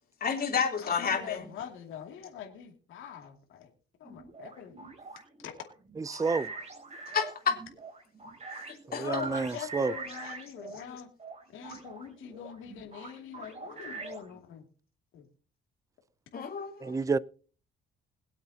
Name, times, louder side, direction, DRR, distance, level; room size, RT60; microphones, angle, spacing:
voice 1, 0.2-1.4 7.1-7.6 8.7-9.0 16.3-17.0, left 6 dB, 50° left, 3.4 m, -30 dB
voice 2, 0.8-3.7 4.0-4.8 9.0-11.1 11.5-14.7 15.1-15.3, left 9 dB, 80° left, 2.6 m, -43 dB
sound 1, 4.0-10.8 11.2-14.4, right 3 dB, 35° right, 3.3 m, -44 dB
voice 3, 6.0-6.5 8.9-9.9 16.8-17.2, right 4 dB, 15° right, 0.5 m, -29 dB
22.0 x 8.0 x 2.8 m
cardioid pair, 90°, 20 cm